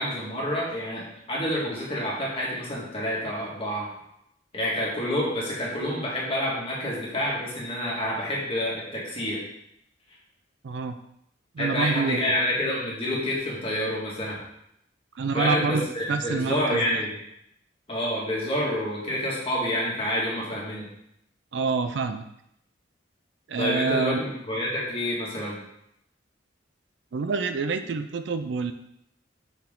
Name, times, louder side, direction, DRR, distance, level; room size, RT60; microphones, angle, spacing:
voice 1, 0.0-3.9 4.5-9.4 11.6-14.4 15.3-17.2 17.9-20.9 23.6-25.6, left 1 dB, 30° left, -5 dB, 1.8 m, -28 dB
voice 2, 10.6-11.0 11.5-12.4 15.2-17.0 21.5-22.2 23.5-24.2 27.1-28.7, right 4 dB, 65° right, 9 dB, 0.4 m, -27 dB
5.7 x 4.6 x 3.7 m, 0.77 s
head